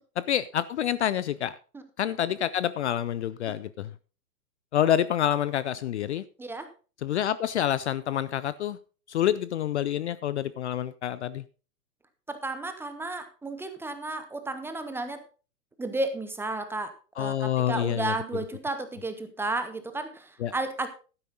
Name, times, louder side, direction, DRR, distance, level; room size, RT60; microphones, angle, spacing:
voice 1, 0.2-1.6 2.0-3.9 4.7-6.2 7.0-8.8 9.1-11.4 17.2-18.1 20.4-20.5, left 10 dB, 45° left, 17 dB, 0.5 m, -27 dB
voice 2, 6.4-6.7 12.3-15.2 15.8-20.9, right 2 dB, 5° right, 9 dB, 0.7 m, -33 dB
12.0 x 9.9 x 3.9 m, 0.35 s
figure-of-eight pair, 115°, 48 cm